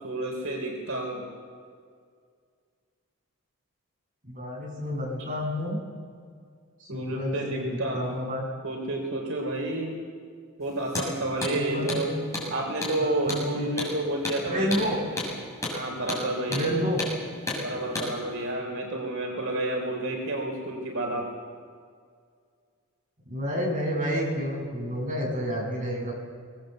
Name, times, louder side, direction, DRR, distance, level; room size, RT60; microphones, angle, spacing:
voice 1, 0.0-1.3 6.9-8.2 8.6-10.0 10.6-12.2 12.5-15.0 15.7-16.8 17.6-21.3, right 1 dB, 75° right, 1 dB, 3.7 m, -30 dB
voice 2, 4.2-5.8 6.8-8.4 11.6-12.4 13.0-13.7 14.4-15.0 16.5-17.0 23.3-26.1, equal, 35° right, -2 dB, 7.0 m, -30 dB
Hammer, 10.9-11.1 11.4-11.5 11.9-12.0 12.3-12.5 12.8-13.0 13.3-13.4 13.8-13.9 14.2-14.4 14.7-14.9 15.2-15.3 15.6-15.8 16.1-16.2 16.5-16.7 17.0-17.1 17.5-17.6 17.9-18.1, left 2 dB, 15° left, 7.4 m, -31 dB
23.0 x 19.5 x 7.9 m, 2.1 s
head